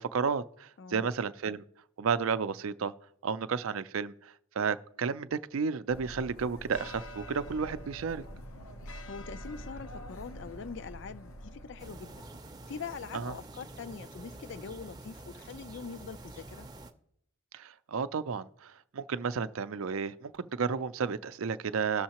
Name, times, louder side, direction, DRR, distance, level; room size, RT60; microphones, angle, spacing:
voice 1, 0.0-1.6 2.0-2.9 3.2-8.2 13.1-13.3 17.5-22.0, right 5 dB, 75° right, 0.5 m, -32 dB
voice 2, 0.8-1.1 9.0-12.3 12.7-16.7, left 5 dB, 55° left, 0.4 m, -43 dB
sound 1, 5.9-12.4, equal, 85° left, 0.9 m, -45 dB
sound 2, 11.8-16.9, right 2 dB, 20° right, 0.6 m, -47 dB
18.0 x 6.4 x 2.9 m
head